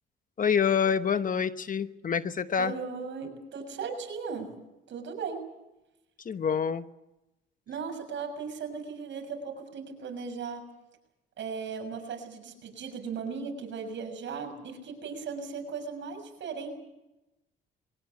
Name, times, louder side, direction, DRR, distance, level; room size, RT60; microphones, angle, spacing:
voice 1, 0.4-2.7 6.2-6.9, left 7 dB, 45° left, 12 dB, 1.1 m, -27 dB
voice 2, 2.6-4.5 4.9-5.4 7.7-10.6 11.4-16.7, right 5 dB, 70° right, 4 dB, 6.8 m, -37 dB
23.0 x 19.0 x 8.5 m, 0.96 s
cardioid pair, 90°, 20 cm